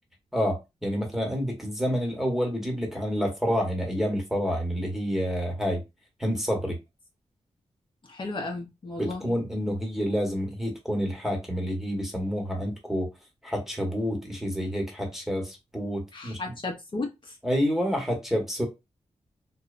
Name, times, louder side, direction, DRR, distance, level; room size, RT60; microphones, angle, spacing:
voice 1, 0.3-5.8 6.2-6.8 9.0-13.1 13.4-16.5 17.4-18.7, equal, 5° right, 1.0 m, -28 dB
voice 2, 8.0-9.3 16.1-17.4, left 3 dB, 45° left, 0.6 m, -34 dB
2.7 x 2.0 x 2.4 m
cardioid pair, 70°, 11 cm